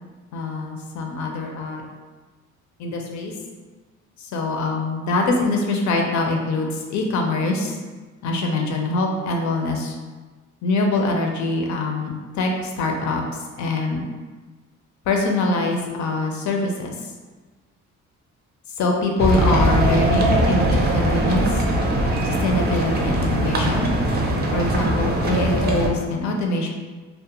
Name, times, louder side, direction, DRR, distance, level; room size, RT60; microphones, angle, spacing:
voice 1, 0.3-1.8 2.8-3.3 4.2-7.8 8.2-10.0 10.6-13.2 13.6-14.0 15.1-16.9 18.8-21.6 22.2-23.9 24.5-26.7, left 2 dB, 70° left, 2 dB, 0.5 m, -23 dB
sound 1, 19.2-25.9, right 1 dB, 35° right, 0.5 m, -21 dB
2.4 x 2.1 x 2.9 m, 1.3 s
cardioid pair, 90°, 30 cm